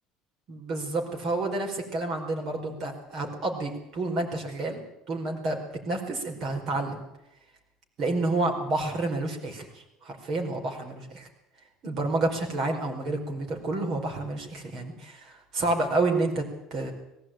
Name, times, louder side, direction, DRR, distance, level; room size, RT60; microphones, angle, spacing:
voice 1, 0.5-5.6 5.8-7.0 8.0-11.3 11.8-16.9, right 2 dB, 35° right, 2 dB, 4.8 m, -29 dB
19.0 x 16.0 x 9.2 m, 0.86 s
cardioid pair, 175°, 0 cm